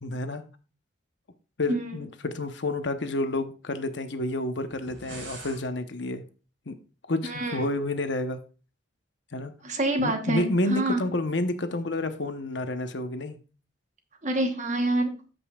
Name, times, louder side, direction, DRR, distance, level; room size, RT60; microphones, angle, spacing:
voice 1, 0.0-0.4 1.6-6.2 6.7-6.8 7.1-8.4 9.3-9.5 10.0-13.4, left 2 dB, 65° left, 8 dB, 0.9 m, -29 dB
voice 2, 1.7-2.0 7.2-7.7 9.6-11.1 14.2-15.1, right 1 dB, 40° right, 5 dB, 1.1 m, -27 dB
sound 1, 4.7-5.6, right 3 dB, 75° right, 3.1 m, -43 dB
14.0 x 5.4 x 2.3 m, 0.35 s
head